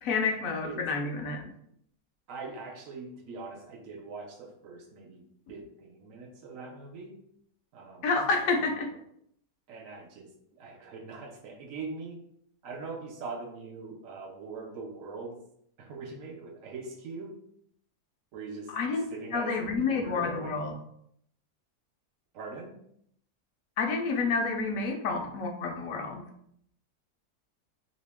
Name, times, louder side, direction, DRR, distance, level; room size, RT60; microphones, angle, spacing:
voice 1, 0.0-1.5 8.0-8.9 18.7-19.0 19.3-20.8 23.8-26.2, left 4 dB, 70° left, 3 dB, 0.9 m, -29 dB
voice 2, 2.3-5.2 5.5-7.2 7.7-9.0 9.7-12.2 12.6-15.4 15.8-17.3 18.3-18.7 19.1-20.6 22.3-22.8, right 4 dB, 70° right, 3 dB, 0.9 m, -42 dB
2.9 x 2.8 x 3.4 m, 0.70 s
omnidirectional pair, 1.6 m